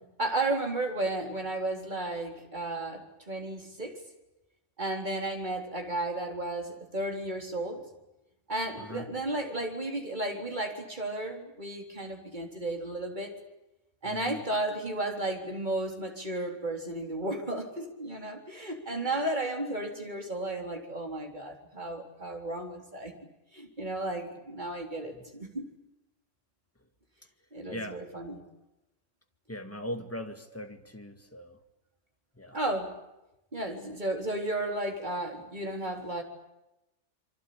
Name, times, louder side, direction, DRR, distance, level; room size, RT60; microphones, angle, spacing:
voice 1, 0.2-4.0 4.8-7.9 8.5-13.3 14.0-23.1 23.5-25.7 27.5-28.4 32.5-32.9 33.5-36.2, right 2 dB, 35° right, 4.2 m, -33 dB
voice 2, 8.8-9.1 14.1-14.4 25.2-25.3 27.7-28.0 29.5-31.6 32.4-32.6, equal, 10° left, 2.1 m, -40 dB
27.5 x 24.5 x 8.7 m
omnidirectional pair, 1.3 m